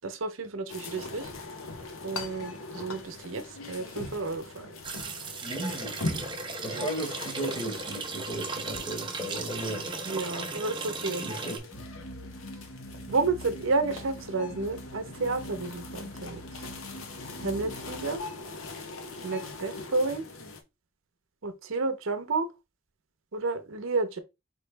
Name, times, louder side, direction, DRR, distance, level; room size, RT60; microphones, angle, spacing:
voice 1, 0.0-1.3 2.0-4.7 6.7-6.8 10.1-11.2 13.1-16.6 17.4-18.2 19.2-20.3 21.4-22.5 23.3-24.2, right 3 dB, 75° right, 0.7 m, -31 dB
sound 1, 0.7-20.6, left 3 dB, 90° left, 0.9 m, -42 dB
sound 2, 4.8-11.6, right 3 dB, 25° right, 0.8 m, -36 dB
voice 2, 5.4-9.9 11.2-11.8, right 1 dB, 25° left, 1.4 m, -36 dB
sound 3, 11.7-18.1, equal, 45° left, 1.2 m, -44 dB
4.6 x 3.1 x 3.3 m
head